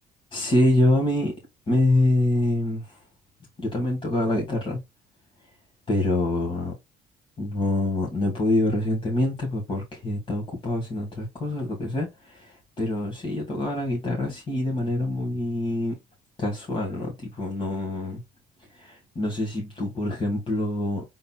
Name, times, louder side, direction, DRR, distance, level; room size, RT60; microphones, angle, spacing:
voice 1, 0.3-1.3 1.7-3.0 3.6-4.8 5.4-5.5 5.9-6.7 7.4-16.0 16.4-18.2 18.7-21.0, left 1 dB, 30° left, 1.9 m, -25 dB
5.9 x 3.8 x 2.3 m
cardioid pair, 110°, 17 cm